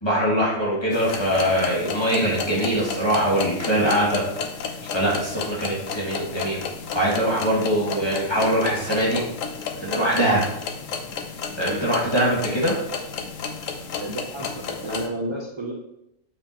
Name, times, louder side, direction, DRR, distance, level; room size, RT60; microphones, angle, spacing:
voice 1, 0.0-4.2 4.6-6.6 6.9-9.2 9.8-10.4 11.6-12.8, equal, 20° left, -6 dB, 2.0 m, -22 dB
sound 1, 0.9-15.1, left 6 dB, 75° left, 1.1 m, -33 dB
voice 2, 14.0-14.5 14.8-15.7, right 1 dB, 40° right, -1 dB, 0.4 m, -31 dB
7.4 x 4.7 x 2.9 m, 0.83 s
omnidirectional pair, 1.4 m